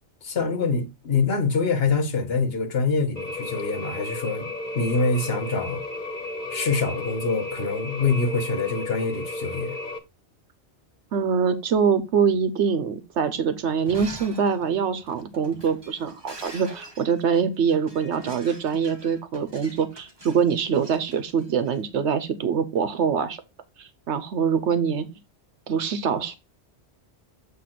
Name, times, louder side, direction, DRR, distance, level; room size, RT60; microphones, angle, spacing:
voice 1, 0.2-5.8 6.5-9.8, left 4 dB, 65° left, 1.3 m, -25 dB
sound 1, 3.2-10.0, left 2 dB, 40° left, 1.5 m, -33 dB
voice 2, 11.1-23.4 23.8-25.1 25.7-26.4, right 6 dB, 85° right, 1.1 m, -24 dB
Shatter, 13.8-21.8, equal, 20° right, 1.7 m, -45 dB
7.7 x 3.0 x 5.8 m
omnidirectional pair, 1.1 m